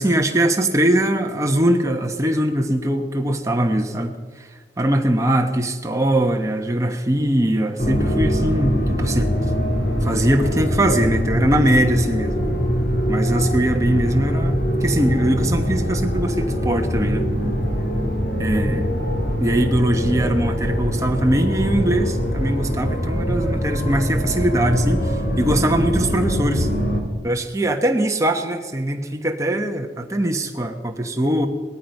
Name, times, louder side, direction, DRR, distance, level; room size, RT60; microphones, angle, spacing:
voice 1, 0.0-4.5 4.8-9.3 10.0-12.4 13.1-17.6 18.4-18.8 19.4-26.7 27.2-31.5, right 1 dB, 15° right, 3 dB, 1.1 m, -21 dB
sound 1, 7.8-27.0, equal, 55° left, 2.3 m, -23 dB
18.0 x 13.5 x 5.3 m, 1.4 s
head